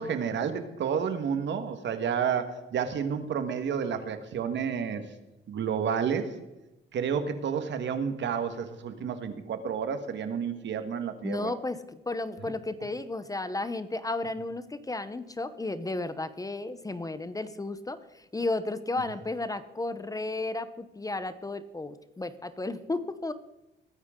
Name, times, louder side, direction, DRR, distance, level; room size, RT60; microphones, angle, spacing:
voice 1, 0.0-5.0 5.5-6.3 6.9-11.5, right 7 dB, 65° right, 9 dB, 1.6 m, -30 dB
voice 2, 11.2-23.3, left 2 dB, 15° left, 13 dB, 0.8 m, -33 dB
21.0 x 9.6 x 3.8 m, 0.97 s
cardioid pair, 90°, 20 cm